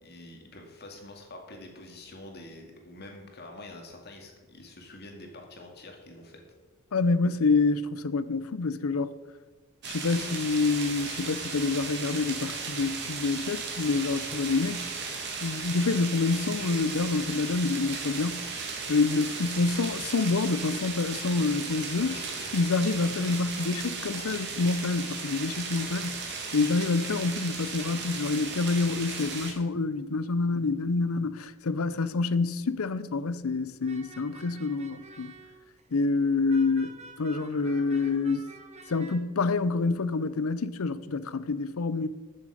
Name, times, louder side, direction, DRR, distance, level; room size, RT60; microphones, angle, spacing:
voice 1, 0.0-6.4 22.0-22.5, left 2 dB, 50° left, 2.2 m, -46 dB
voice 2, 6.9-9.1 9.9-14.9 15.4-22.1 22.5-26.2 26.5-35.3 35.9-38.5 38.9-42.1, left 3 dB, 75° left, 0.6 m, -27 dB
sound 1, 9.8-29.5, right 4 dB, 50° right, 1.9 m, -36 dB
sound 2, 33.8-35.9 36.5-39.2, right 3 dB, 30° right, 0.9 m, -49 dB
14.0 x 7.3 x 5.0 m
head